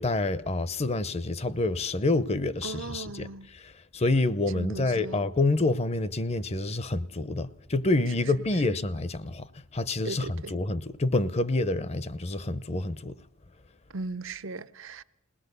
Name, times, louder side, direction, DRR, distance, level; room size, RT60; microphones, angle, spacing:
voice 1, 0.0-3.3 3.5-13.2, left 2 dB, 30° left, 0.7 m, -28 dB
voice 2, 2.6-3.5 4.5-5.2 10.0-10.5 13.9-15.0, right 3 dB, 75° right, 0.7 m, -37 dB
20.5 x 18.5 x 6.8 m
head